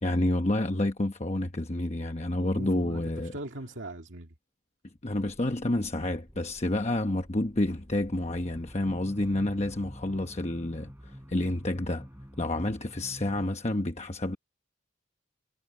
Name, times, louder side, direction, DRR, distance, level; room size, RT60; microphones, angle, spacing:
voice 1, 0.0-3.3 5.0-12.1 12.4-14.4, left 1 dB, 30° left, 1.0 m, -29 dB
voice 2, 2.4-4.4, right 1 dB, 65° right, 2.1 m, -41 dB
sound 1, 5.1-13.5, equal, 10° right, 3.9 m, -49 dB
head